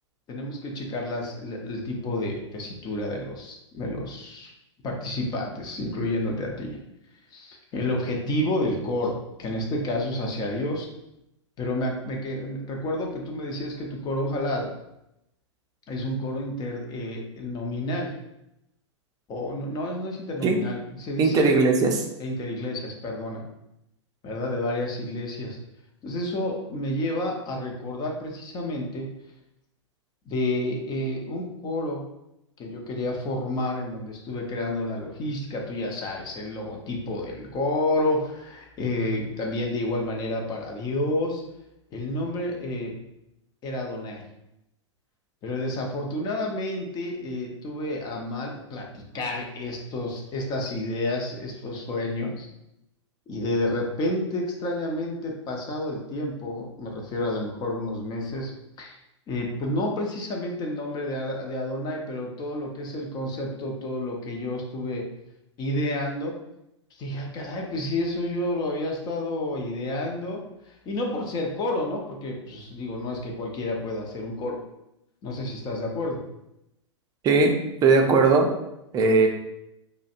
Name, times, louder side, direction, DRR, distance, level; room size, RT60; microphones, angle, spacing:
voice 1, 0.3-4.5 4.8-6.8 7.3-10.9 11.6-14.7 15.9-18.1 19.3-21.5 22.2-23.5 24.2-25.6 26.0-29.1 30.3-32.1 32.6-41.4 41.9-43.0 43.6-44.2 45.4-52.5 53.3-58.5 58.8-59.0 59.3-65.0 65.6-66.4 66.9-74.6 75.2-76.2, left 1 dB, 25° left, 0 dB, 0.7 m, -30 dB
voice 2, 21.2-22.0 77.2-77.5 77.8-78.5 78.9-79.3, right 4 dB, 25° right, 3 dB, 0.6 m, -18 dB
4.9 x 2.2 x 2.5 m, 0.85 s
figure-of-eight pair, 105°, 16 cm